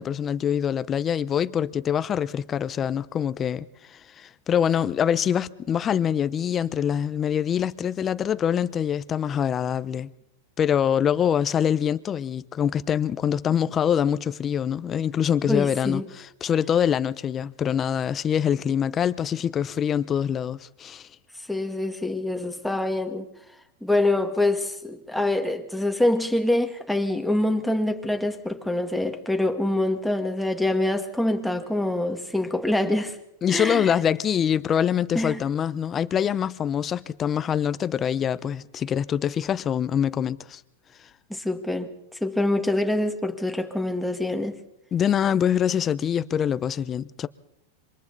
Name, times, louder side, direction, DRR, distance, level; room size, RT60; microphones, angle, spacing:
voice 1, 0.0-10.1 10.6-21.1 33.4-40.6 44.9-47.3, left 8 dB, 25° left, 0.8 m, -24 dB
voice 2, 15.5-16.0 21.5-23.3 23.8-33.2 33.5-33.9 35.1-35.4 41.3-44.6, left 1 dB, ahead, 1.9 m, -25 dB
27.5 x 25.0 x 4.1 m
hypercardioid pair, 130°, 0 cm